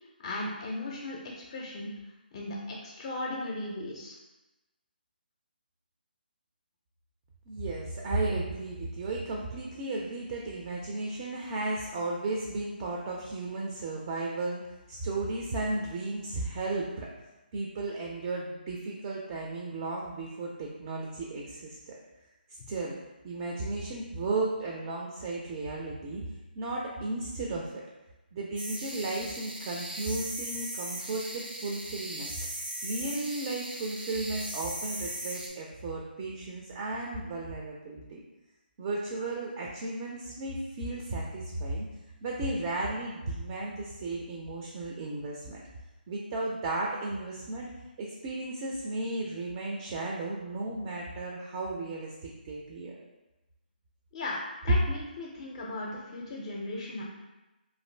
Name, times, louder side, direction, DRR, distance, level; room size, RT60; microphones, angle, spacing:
voice 1, 0.2-1.9 2.3-4.1 54.1-57.0, left 2 dB, 35° left, -3 dB, 0.4 m, -37 dB
voice 2, 7.5-14.6 14.9-17.1 17.5-21.9 22.7-23.0 23.2-26.2 26.6-27.8 28.3-32.5 32.8-38.2 38.8-41.9 42.2-45.6 46.1-47.7 48.0-53.0, right 2 dB, 25° right, -2 dB, 0.3 m, -34 dB
sound 1, 28.6-35.5, right 1 dB, 80° right, 0.7 m, -38 dB
2.5 x 2.4 x 3.1 m, 1.1 s
figure-of-eight pair, 150°, 5 cm